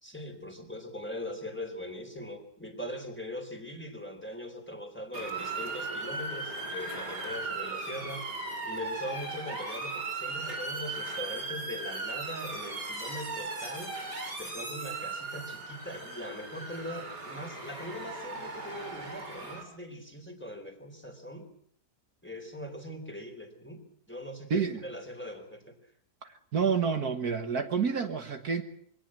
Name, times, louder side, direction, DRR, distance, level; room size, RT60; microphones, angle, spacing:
voice 1, 0.0-8.2 8.6-14.0 14.3-21.5 22.2-25.8, left 1 dB, 5° left, 4 dB, 3.8 m, -41 dB
Motor vehicle (road) / Siren, 5.1-19.6, right 3 dB, 75° right, 5.6 m, -37 dB
voice 2, 24.5-24.8 26.5-28.6, right 6 dB, 60° right, 7 dB, 1.9 m, -28 dB
23.5 x 18.0 x 7.5 m, 0.66 s
omnidirectional pair, 1.8 m